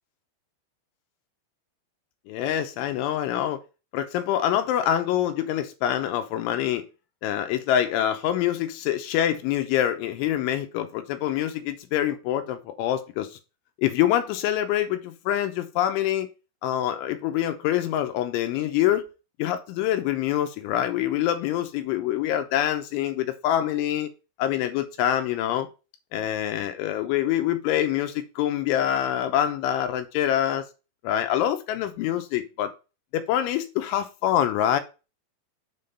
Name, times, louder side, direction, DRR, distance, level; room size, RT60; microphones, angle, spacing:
voice 1, 2.3-3.6 3.9-6.8 7.2-13.4 13.8-16.3 16.6-19.1 19.4-24.1 24.4-25.7 26.1-30.7 31.0-32.7 33.1-34.8, left 11 dB, 85° left, 3.0 m, -25 dB
7.6 x 3.7 x 5.4 m
omnidirectional pair, 5.9 m